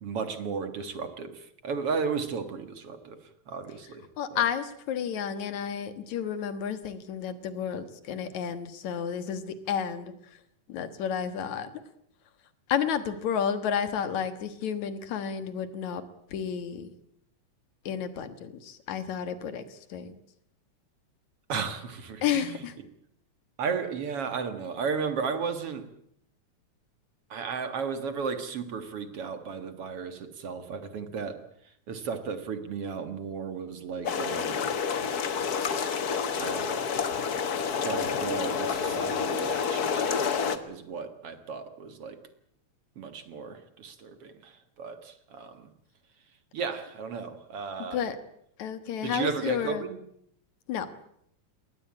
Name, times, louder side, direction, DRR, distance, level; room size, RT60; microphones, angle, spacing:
voice 1, 0.0-3.2 3.5-4.0 4.3-4.4 21.5-22.5 23.6-25.9 27.3-31.4 31.9-34.7 36.4-36.9 37.8-42.2 43.0-44.5 44.8-45.6 46.5-48.0 49.0-50.0, right 5 dB, 55° right, 10 dB, 2.4 m, -34 dB
voice 2, 4.2-10.1 10.7-11.7 12.7-16.0 16.3-16.9 17.9-20.2 22.2-22.7 47.9-48.2 48.6-49.9 50.7-50.9, left 8 dB, 70° left, 12 dB, 2.8 m, -31 dB
sound 1, 34.0-40.6, left 6 dB, 50° left, 1.1 m, -29 dB
21.5 x 18.5 x 8.7 m, 0.71 s
omnidirectional pair, 3.5 m